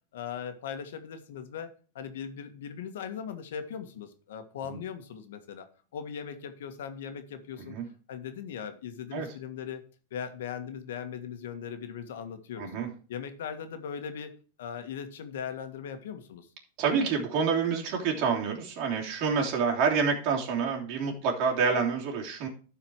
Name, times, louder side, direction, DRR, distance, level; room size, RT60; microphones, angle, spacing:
voice 1, 0.1-5.7 5.9-7.8 8.1-9.8 10.1-12.7 13.1-14.3 14.6-16.5, left 7 dB, 80° left, 8 dB, 1.6 m, -39 dB
voice 2, 12.6-12.9 16.8-22.5, right 5 dB, 45° right, 0 dB, 3.2 m, -28 dB
12.0 x 4.8 x 4.7 m, 0.38 s
supercardioid pair, 145°, 0 cm